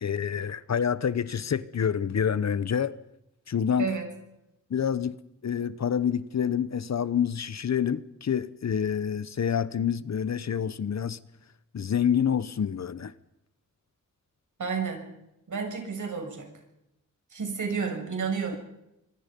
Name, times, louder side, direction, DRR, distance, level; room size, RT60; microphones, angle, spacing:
voice 1, 0.0-3.0 3.5-3.9 4.7-5.2 5.4-11.2 11.7-13.1, left 8 dB, 60° left, 0.9 m, -27 dB
voice 2, 14.6-15.0 15.5-16.5 17.3-18.6, right 5 dB, 75° right, 6.8 m, -31 dB
25.5 x 24.0 x 5.3 m
wide cardioid pair, 135°, 31 cm